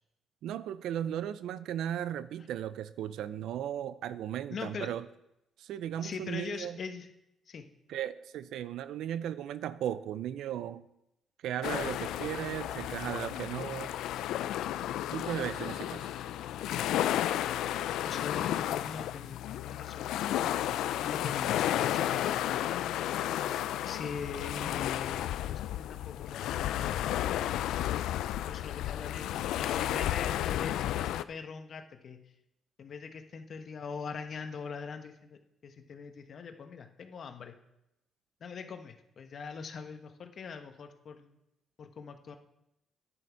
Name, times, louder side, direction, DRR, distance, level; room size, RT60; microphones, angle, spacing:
voice 1, 0.4-5.1 5.6-6.8 7.9-10.9 11.4-13.9 15.1-16.1, right 10 dB, 80° right, 0.5 m, -36 dB
voice 2, 4.5-4.9 6.0-7.1 7.5-7.7 18.0-23.1 23.8-27.8 28.3-32.2 32.8-37.6 38.4-41.4 41.8-42.4, left 5 dB, 55° left, 1.2 m, -43 dB
sound 1, 11.6-31.2, left 12 dB, 85° left, 0.4 m, -32 dB
10.5 x 9.2 x 4.7 m
cardioid pair, 90°, 0 cm